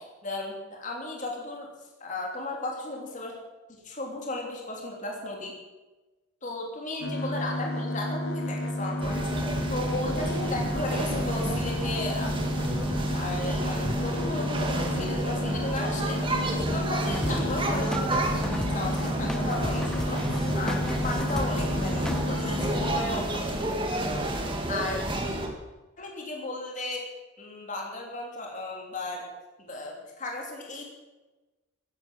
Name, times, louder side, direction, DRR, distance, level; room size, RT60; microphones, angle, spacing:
voice 1, 0.0-1.7 2.0-3.3 3.8-5.5 6.4-12.3 13.1-16.2 16.6-24.1 24.7-25.0 26.0-27.1 27.4-29.3 29.6-30.8, left 2 dB, 35° left, 0 dB, 3.1 m, -35 dB
sound 1, 7.0-23.0, left 1 dB, 75° left, 2.4 m, -31 dB
sound 2, 9.0-25.5, right 1 dB, 25° right, 2.0 m, -31 dB
sound 3, 17.1-22.2, equal, 5° left, 0.8 m, -37 dB
14.5 x 10.5 x 8.6 m, 1.1 s
head